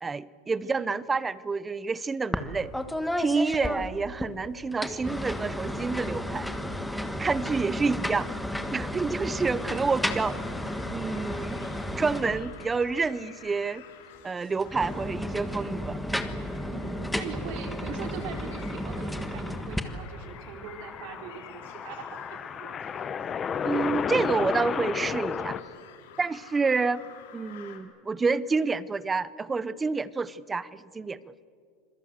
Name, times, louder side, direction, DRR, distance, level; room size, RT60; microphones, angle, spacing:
voice 1, 0.0-2.7 3.2-6.5 7.0-8.3 8.7-10.4 10.9-11.6 12.0-13.8 14.2-16.0 23.6-25.6 26.2-27.0 27.3-31.3, right 4 dB, 15° right, 19 dB, 0.6 m, -28 dB
voice 2, 0.6-1.0 16.7-22.7, right 6 dB, 60° right, 5 dB, 3.8 m, -41 dB
sound 1, 2.3-2.5 2.7-4.3 4.7-12.8 14.5-19.8, left 1 dB, 5° left, 1.4 m, -33 dB
sound 2, 9.6-27.8, left 9 dB, 85° left, 3.5 m, -51 dB
sound 3, 19.5-25.6, left 7 dB, 25° left, 0.8 m, -33 dB
26.5 x 21.5 x 7.9 m, 2.3 s
supercardioid pair, 150°, 0 cm